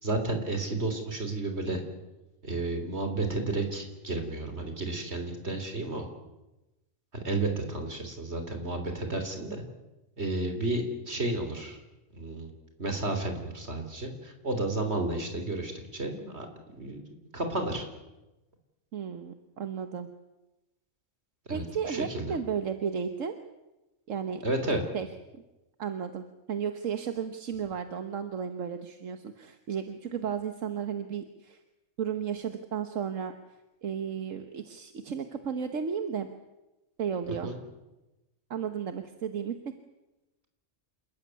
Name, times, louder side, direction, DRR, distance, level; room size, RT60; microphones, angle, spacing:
voice 1, 0.0-1.8 2.4-6.1 7.1-9.6 10.2-11.8 12.1-12.5 12.8-16.5 16.8-17.0 17.3-17.9 21.5-22.4 24.4-24.8 37.4-37.6, right 2 dB, 55° right, 6 dB, 3.8 m, -32 dB
voice 2, 18.9-20.1 21.5-23.4 24.1-24.4 24.9-25.1 25.3-25.4 25.8-31.6 32.0-33.3 33.8-36.3 37.0-37.5 38.5-39.7, right 7 dB, 80° right, 8 dB, 1.5 m, -34 dB
28.0 x 14.0 x 9.6 m, 1.0 s
omnidirectional pair, 1.3 m